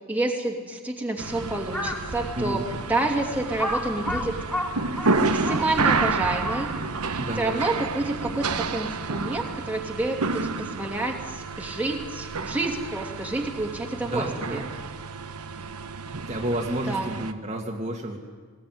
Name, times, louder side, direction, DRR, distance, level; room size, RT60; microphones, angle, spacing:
voice 1, 0.1-2.6 2.9-4.4 5.1-6.7 7.4-14.7 16.9-17.1, right 2 dB, 5° right, 0 dB, 2.6 m, -29 dB
sound 1, 1.2-17.3, right 4 dB, 80° right, 1.2 m, -30 dB
Crow, 1.6-2.1 2.7-2.8 3.6-7.0, left 1 dB, 10° left, 3.9 m, -31 dB
voice 2, 2.4-2.7 7.2-7.7 14.0-14.6 16.3-18.2, right 1 dB, 30° right, 0 dB, 2.0 m, -30 dB
20.0 x 19.5 x 9.4 m, 1.4 s
head